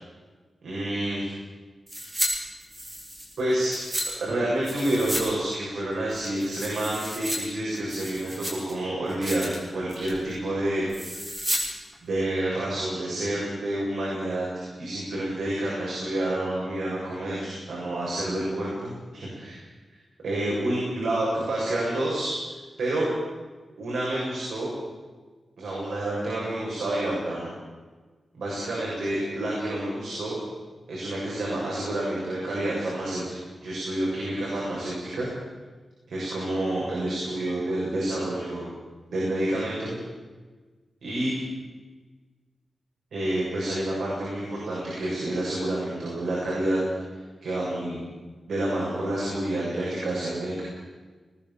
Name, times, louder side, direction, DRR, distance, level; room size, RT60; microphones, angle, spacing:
voice 1, 0.6-1.3 3.4-3.8 4.2-10.9 12.0-19.6 20.2-22.4 22.8-23.1 23.8-24.7 25.6-27.5 28.3-30.4 30.9-33.2 33.6-35.3 36.1-38.7 39.1-39.9 41.0-41.3 43.1-46.8 47.1-48.0 48.5-50.6, right 1 dB, 80° right, -5 dB, 7.0 m, -28 dB
sound 1, 1.9-2.3 2.6-4.1 4.6-5.3 5.5-5.6 6.1-7.4 7.7-8.7 9.1-9.6 9.9-10.2 10.9-11.6 11.9-12.0, equal, 20° right, 4.6 m, -32 dB
21.0 x 18.0 x 7.3 m, 1.4 s
wide cardioid pair, 160°, 0 cm